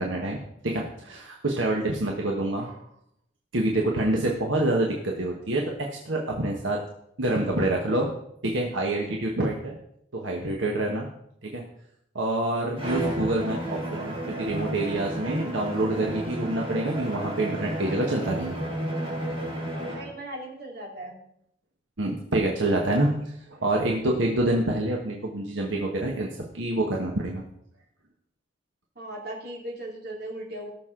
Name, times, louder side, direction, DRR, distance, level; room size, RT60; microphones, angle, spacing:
voice 1, 0.0-2.8 3.5-6.8 7.2-8.1 8.4-9.7 10.1-11.1 11.4-11.6 12.1-18.6 22.0-23.1 23.5-26.3 26.5-27.4, right 1 dB, 80° right, 0 dB, 1.4 m, -27 dB
Bowed string instrument, 12.8-20.2, right 1 dB, 30° right, 4.3 m, -32 dB
voice 2, 19.9-21.2 22.6-23.2 29.0-30.7, right 1 dB, 55° right, -1 dB, 2.7 m, -38 dB
18.0 x 6.4 x 3.8 m, 0.73 s
head